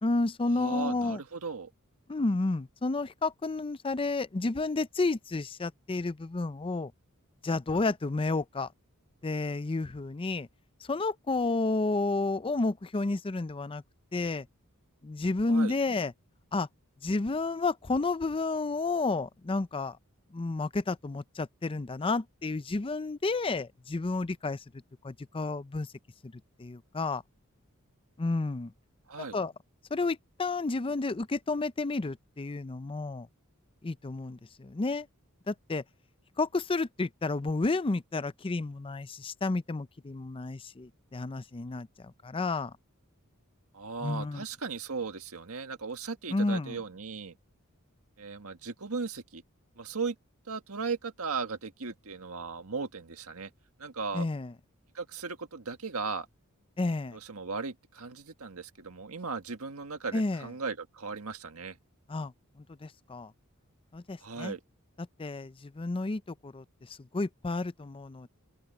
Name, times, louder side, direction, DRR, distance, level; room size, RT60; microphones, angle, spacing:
voice 1, 0.0-1.2 2.1-6.9 7.4-8.7 9.2-10.5 10.8-13.8 14.1-14.5 15.0-16.1 16.5-16.7 17.0-20.0 20.3-24.6 25.0-25.9 26.2-26.3 26.6-27.2 28.2-28.7 29.3-29.5 29.9-33.3 33.8-35.1 35.5-35.8 36.4-42.7 44.0-44.4 46.3-46.8 54.1-54.5 56.8-57.2 60.1-60.5 62.1-63.3 63.9-64.5 65.0-68.3, left 3 dB, 25° left, 0.5 m, -31 dB
voice 2, 0.6-1.7 15.5-15.7 29.1-29.4 43.7-47.4 48.2-49.4 49.8-50.2 50.5-53.5 53.8-54.3 54.9-56.3 57.1-61.8 64.2-64.6, right 4 dB, 85° right, 1.7 m, -37 dB
open air
head